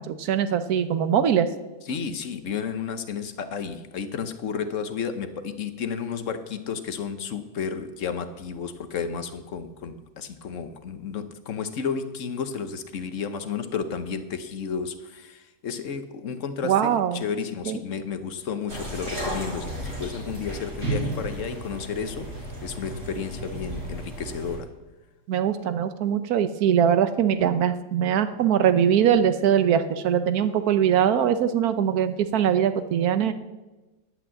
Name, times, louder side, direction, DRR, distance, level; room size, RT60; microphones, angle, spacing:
voice 1, 0.1-1.5 16.6-17.2 17.7-17.8 25.3-33.3, right 9 dB, 60° right, 11 dB, 1.1 m, -22 dB
voice 2, 1.9-22.3 22.6-24.7, left 6 dB, 50° left, 10 dB, 1.0 m, -32 dB
sound 1, 18.7-24.6, right 1 dB, 35° right, 4.5 m, -33 dB
11.0 x 8.2 x 7.5 m, 1.1 s
omnidirectional pair, 2.0 m